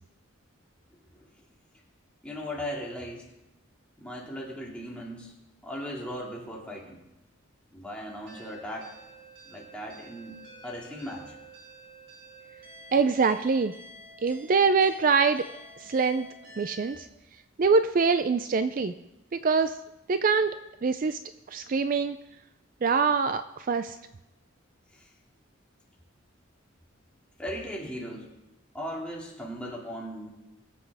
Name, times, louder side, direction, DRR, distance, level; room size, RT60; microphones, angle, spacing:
voice 1, 2.2-3.3 4.0-5.3 5.6-7.0 7.7-8.9 9.5-10.4 10.6-11.4 24.9-25.1 27.4-28.3 28.7-30.3, equal, 5° left, -3 dB, 2.2 m, -37 dB
sound 1, 8.3-17.0, right 1 dB, 70° right, 4.5 m, -50 dB
voice 2, 12.9-13.7 14.2-15.4 15.8-16.3 16.6-17.1 17.6-18.9 19.3-19.7 20.1-20.6 20.8-21.2 21.5-22.2 22.8-24.0, right 5 dB, 40° right, 10 dB, 0.4 m, -24 dB
21.5 x 7.8 x 3.4 m, 0.94 s
head